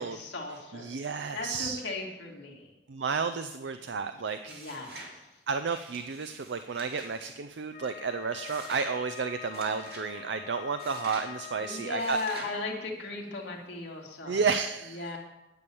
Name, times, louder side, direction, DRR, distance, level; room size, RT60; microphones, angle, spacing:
voice 1, 0.0-1.1 1.3-2.7 4.5-5.3 11.6-14.4 14.9-15.2, left 2 dB, 80° left, 0 dB, 2.4 m, -37 dB
voice 2, 0.7-1.8 2.9-4.6 5.5-12.2 14.3-15.2, right 5 dB, 80° right, 9 dB, 0.5 m, -32 dB
sound 1, 4.4-5.1 5.7-7.3 8.4-8.9 9.5-10.1 10.8-11.3 12.0-12.5, right 2 dB, 60° right, 2.5 m, -46 dB
Wind instrument woodwind instrument, 7.6-12.3, left 10 dB, 40° left, 0.4 m, -45 dB
9.9 x 6.9 x 8.6 m, 1.0 s
head